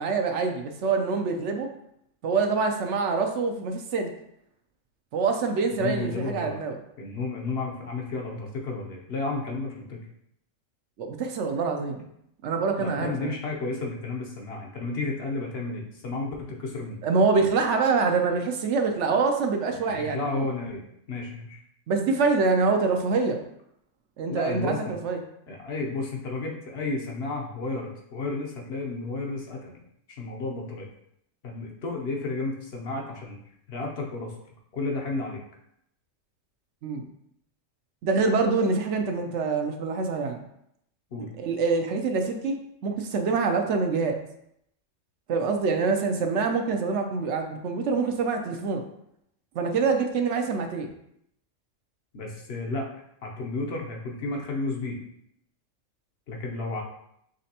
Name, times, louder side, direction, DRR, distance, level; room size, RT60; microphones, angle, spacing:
voice 1, 0.0-1.7 2.2-4.1 5.1-6.8 11.0-12.1 12.4-13.3 17.0-20.5 21.9-23.4 24.2-25.2 36.8-37.1 38.0-40.4 41.4-42.6 42.8-44.2 45.3-48.8 49.5-50.9, right 4 dB, 70° right, 4 dB, 0.8 m, -25 dB
voice 2, 5.7-6.6 7.0-10.0 12.8-17.0 19.7-20.8 21.1-21.6 24.3-25.0 25.5-29.8 30.1-30.9 31.4-33.4 33.7-34.3 34.7-35.4 41.1-41.3 52.1-52.9 53.2-55.0 56.3-56.8, left 3 dB, 60° left, 0 dB, 0.9 m, -32 dB
5.2 x 3.2 x 2.8 m, 0.74 s
omnidirectional pair, 1.3 m